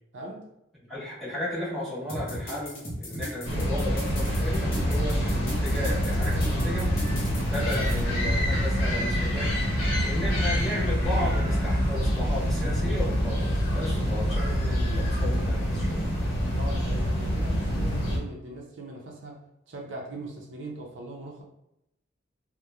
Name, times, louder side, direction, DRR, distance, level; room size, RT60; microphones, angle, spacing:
voice 1, 0.1-0.5 16.5-19.4 19.7-21.4, right 2 dB, 65° right, -1 dB, 0.5 m, -40 dB
voice 2, 0.9-6.9 7.5-9.5 10.0-16.1, left 1 dB, ahead, -9 dB, 0.8 m, -34 dB
sound 1, 2.1-8.0, equal, 50° left, 0.7 m, -36 dB
sound 2, 3.4-18.2, equal, 90° left, 0.8 m, -26 dB
2.8 x 2.1 x 2.3 m, 0.82 s
head